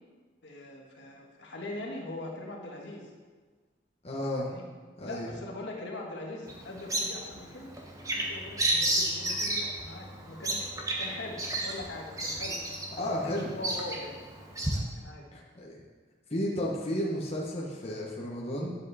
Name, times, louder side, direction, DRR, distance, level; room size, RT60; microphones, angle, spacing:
voice 1, 0.4-3.1 4.4-4.6 5.0-7.7 8.0-10.7 11.0-12.6 13.0-14.1 14.7-15.2, left 2 dB, 75° left, -1 dB, 1.8 m, -41 dB
voice 2, 4.0-4.5 5.0-5.3 13.0-13.7 15.3-15.8 16.3-18.7, equal, 35° left, -3 dB, 1.2 m, -33 dB
Bird vocalization bird call bird song, 6.5-14.8, right 1 dB, 20° right, 1.1 m, -32 dB
10.0 x 7.6 x 4.2 m, 1.4 s
head